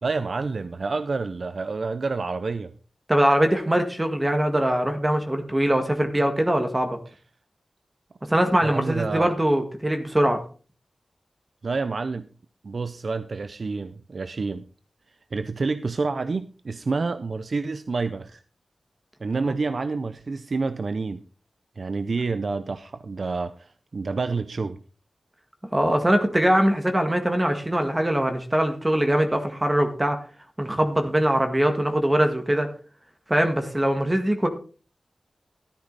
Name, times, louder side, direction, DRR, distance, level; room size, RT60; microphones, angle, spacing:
voice 1, 0.0-2.7 8.6-9.3 11.6-12.3 12.6-14.6 15.3-18.4 19.2-21.2 21.8-24.8, right 4 dB, 65° right, 12 dB, 0.6 m, -28 dB
voice 2, 3.1-7.0 8.3-10.4 19.4-19.5 25.7-30.2 30.6-32.7 33.3-34.5, right 1 dB, 20° right, 5 dB, 1.8 m, -22 dB
13.0 x 9.9 x 4.1 m, 0.38 s
wide cardioid pair, 60°, 0 cm